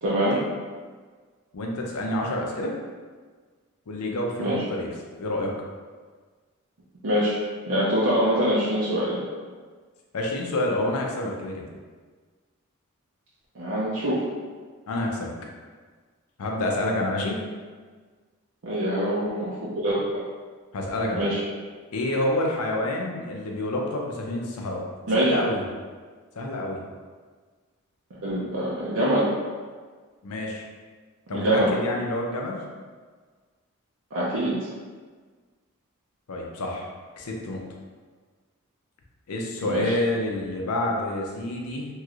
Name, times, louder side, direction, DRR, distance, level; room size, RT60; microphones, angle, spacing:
voice 1, 0.0-0.4 4.4-4.6 7.0-7.4 7.7-9.2 13.6-14.2 18.6-20.2 21.1-21.4 25.1-25.3 28.1-29.3 31.3-31.7 34.1-34.6 39.6-39.9, right 1 dB, 65° right, -8 dB, 0.6 m, -24 dB
voice 2, 1.5-2.8 3.9-4.9 5.2-5.5 10.1-11.6 14.9-15.3 16.4-17.4 20.7-21.2 21.9-24.8 25.1-25.6 26.4-26.8 30.2-30.6 31.3-32.6 36.3-36.9 37.2-37.6 39.3-41.9, left 1 dB, 85° left, 0 dB, 0.6 m, -28 dB
3.0 x 3.0 x 2.4 m, 1.5 s
head